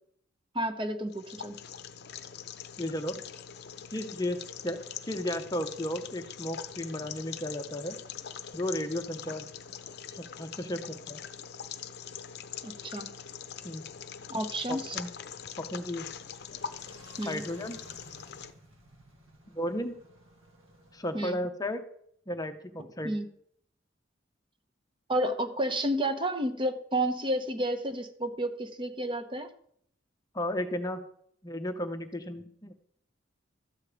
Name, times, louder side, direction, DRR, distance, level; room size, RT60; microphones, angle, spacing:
voice 1, 0.5-1.6 12.6-13.1 14.3-15.0 17.2-17.4 21.1-21.4 23.0-23.3 25.1-29.5, right 1 dB, 25° right, 8 dB, 0.9 m, -31 dB
sound 1, 1.1-18.5, left 8 dB, 55° left, 0.7 m, -43 dB
voice 2, 2.8-3.2 3.9-8.0 8.5-9.5 10.1-11.2 13.6-13.9 14.7-15.1 15.6-16.1 17.2-17.8 19.6-20.0 20.9-21.8 22.3-23.1 30.3-31.0 31.4-32.7, left 1 dB, 20° left, 7 dB, 0.7 m, -34 dB
sound 2, 13.4-21.1, right 1 dB, 90° right, 2.5 m, -57 dB
13.0 x 8.2 x 5.0 m, 0.67 s
head